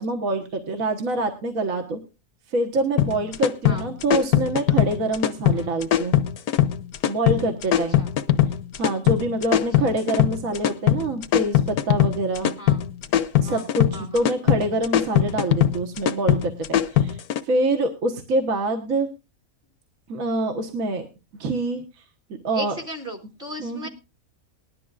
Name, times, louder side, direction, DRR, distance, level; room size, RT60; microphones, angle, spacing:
voice 1, 0.0-2.0 2.5-6.1 7.1-8.1 8.8-12.5 13.4-17.2 17.4-19.1 20.1-21.1 21.4-21.8 22.4-22.8 23.6-23.9, right 2 dB, 70° right, 4 dB, 1.7 m, -25 dB
sound 1, 3.0-17.4, left 11 dB, 85° left, 1.3 m, -21 dB
voice 2, 9.5-9.9 12.6-12.8 13.4-13.6 13.9-14.2 22.5-23.9, equal, 40° right, 2 dB, 1.8 m, -36 dB
20.0 x 11.5 x 2.4 m, 0.29 s
omnidirectional pair, 1.5 m